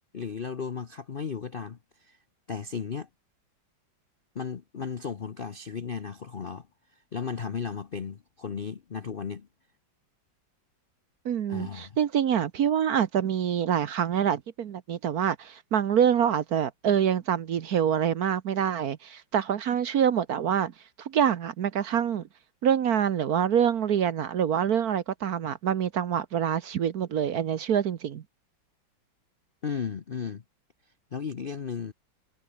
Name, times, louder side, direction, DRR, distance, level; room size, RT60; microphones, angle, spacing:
voice 1, 0.1-2.2 2.5-3.1 4.3-6.7 6.9-9.5 11.5-12.0 29.6-30.4 31.1-31.9, left 6 dB, 50° left, 0.7 m, -35 dB
voice 2, 11.2-20.7 21.0-22.2 22.6-28.2, right 8 dB, 55° right, 1.3 m, -26 dB
omnidirectional pair, 2.1 m